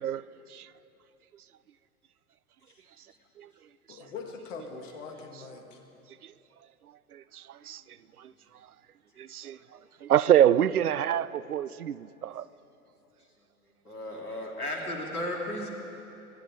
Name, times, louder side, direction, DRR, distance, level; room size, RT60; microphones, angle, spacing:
voice 1, 3.9-5.8 14.0-14.2, left 4 dB, 55° left, 2.3 m, -42 dB
voice 2, 9.2-9.6 10.0-12.4, right 10 dB, 80° right, 0.5 m, -25 dB
voice 3, 13.8-15.7, left 1 dB, 85° left, 2.7 m, -34 dB
24.0 x 11.0 x 5.1 m
figure-of-eight pair, 100°, 44 cm